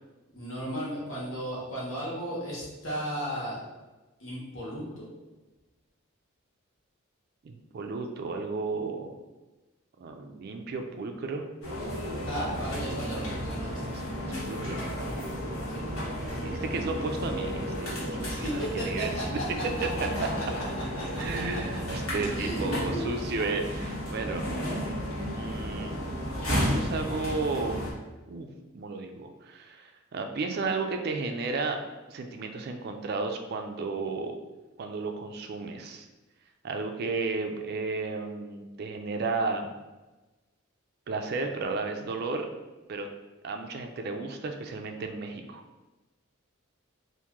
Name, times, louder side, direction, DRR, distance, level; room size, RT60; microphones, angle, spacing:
voice 1, 0.3-3.6 4.2-5.1 12.2-13.8 15.7-15.8 18.3-21.6 22.3-23.0, equal, 65° left, -6 dB, 1.3 m, -35 dB
voice 2, 7.4-9.2 10.0-11.4 13.8-14.8 16.4-19.4 20.2-20.3 21.2-24.4 25.3-25.9 26.5-27.8 28.3-31.8 32.1-34.4 34.8-36.1 36.6-39.7 41.1-42.5 42.9-43.1 43.4-45.6, right 3 dB, 50° right, 5 dB, 0.3 m, -33 dB
sound 1, 11.6-27.9, equal, 85° left, 1.3 m, -33 dB
2.9 x 2.6 x 3.6 m, 1.1 s
head